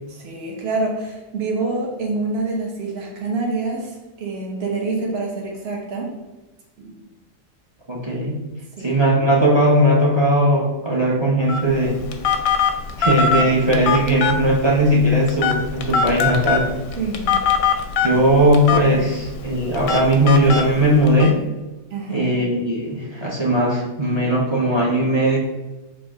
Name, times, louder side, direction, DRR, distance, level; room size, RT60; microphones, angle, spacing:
voice 1, 0.1-6.1 6.8-6.9 8.8-8.9 17.0-17.8 18.1-18.2 19.0-19.2 21.9-22.3, right 3 dB, 55° right, -1 dB, 1.1 m, -27 dB
voice 2, 7.9-8.4 8.8-12.1 13.0-16.7 18.0-21.4 22.1-25.4, equal, 35° right, -3 dB, 0.4 m, -18 dB
Telephone, 11.5-21.3, left 5 dB, 90° left, 1.0 m, -23 dB
3.8 x 2.6 x 4.6 m, 1.1 s
omnidirectional pair, 1.4 m